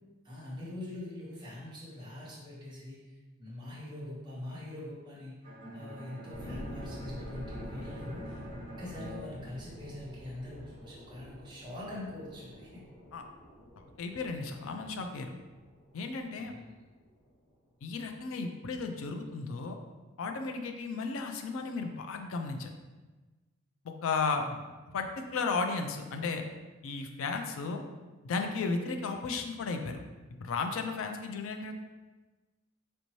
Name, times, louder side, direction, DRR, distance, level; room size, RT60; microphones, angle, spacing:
voice 1, 0.2-3.1 3.4-5.4 5.7-8.4 8.8-12.8 16.4-16.7 24.3-24.5, left 1 dB, 20° right, -7 dB, 1.2 m, -43 dB
Bowed string instrument, 5.4-10.4, equal, 40° right, 0.9 m, -46 dB
sound 1, 6.3-17.3 17.8-17.9, equal, 85° left, 0.9 m, -47 dB
voice 2, 13.8-15.3 15.9-16.5 17.8-19.8 20.2-22.7 23.8-24.5 24.9-26.4 26.8-27.8 28.2-30.0 30.4-31.7, left 4 dB, 65° left, 5 dB, 0.4 m, -34 dB
4.2 x 2.6 x 3.0 m, 1.2 s
head